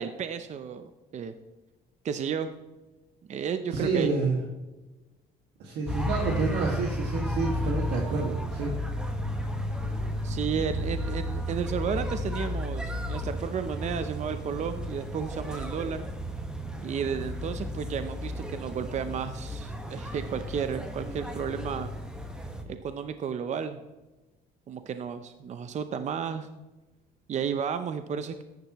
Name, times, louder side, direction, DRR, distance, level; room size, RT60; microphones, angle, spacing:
voice 1, 0.0-1.3 2.0-2.5 3.3-4.1 10.2-16.1 16.8-21.9 22.7-23.8 24.7-26.5 27.3-28.4, right 7 dB, 45° right, 9 dB, 0.7 m, -33 dB
voice 2, 3.7-4.4 5.6-8.7, right 4 dB, 80° right, -2 dB, 2.1 m, -28 dB
sound 1, 5.9-22.6, equal, 5° right, 1.5 m, -33 dB
14.0 x 10.5 x 3.1 m, 1.1 s
cardioid pair, 110°, 17 cm